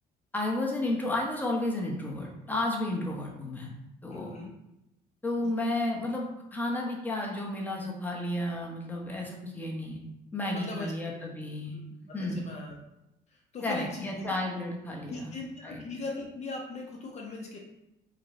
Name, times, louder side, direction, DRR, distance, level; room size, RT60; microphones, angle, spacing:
voice 1, 0.3-3.7 4.0-4.4 5.2-10.0 10.3-11.7 12.1-12.5 13.6-15.4 15.6-15.8, left 1 dB, 10° left, -1 dB, 0.9 m, -32 dB
voice 2, 4.1-4.5 5.4-5.5 10.4-10.9 11.7-11.8 12.4-12.7 13.5-14.1 15.1-17.6, left 3 dB, 40° left, 0 dB, 0.7 m, -39 dB
5.1 x 2.2 x 4.1 m, 0.89 s
cardioid pair, 110°, 17 cm